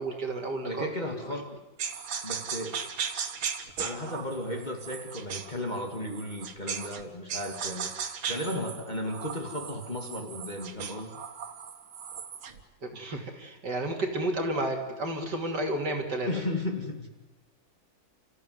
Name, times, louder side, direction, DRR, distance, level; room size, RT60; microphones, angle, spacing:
voice 1, 0.0-0.9 1.2-1.3 12.8-16.3, right 1 dB, 55° right, 3 dB, 3.3 m, -31 dB
voice 2, 0.6-1.6 2.2-2.9 3.8-11.2 16.3-17.1, left 1 dB, 20° left, 2 dB, 2.3 m, -35 dB
sound 1, 1.8-7.0 7.3-12.6, right 7 dB, 90° right, 2.4 m, -37 dB
30.0 x 15.0 x 9.5 m, 1.2 s
omnidirectional pair, 2.2 m